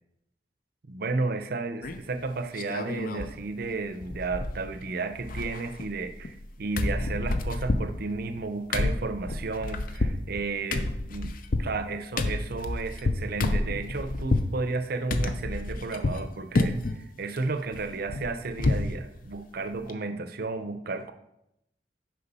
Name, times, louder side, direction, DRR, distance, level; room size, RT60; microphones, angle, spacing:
voice 1, 0.9-21.1, right 3 dB, 60° right, 9 dB, 0.6 m, -33 dB
sound 1, 1.8-2.2 2.6-3.4 3.6-3.7 4.0-4.9 5.1-6.5 6.8-14.5 15.1-16.2 16.5-17.0 17.4-18.9 19.3-19.4 19.7-19.9, left 2 dB, 50° left, 0.6 m, -29 dB
6.8 x 5.1 x 5.4 m, 0.82 s
head